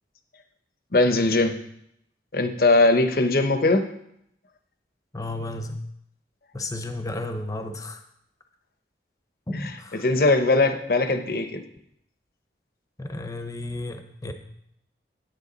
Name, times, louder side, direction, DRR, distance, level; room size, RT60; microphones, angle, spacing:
voice 1, 0.9-1.5 2.3-3.8 9.5-9.8 10.0-11.6, left 2 dB, 55° left, 8 dB, 0.8 m, -20 dB
voice 2, 5.1-5.7 6.5-8.0 9.5-10.0 13.0-14.3, left 2 dB, 20° left, 6 dB, 0.8 m, -33 dB
9.9 x 9.1 x 4.0 m, 0.74 s
head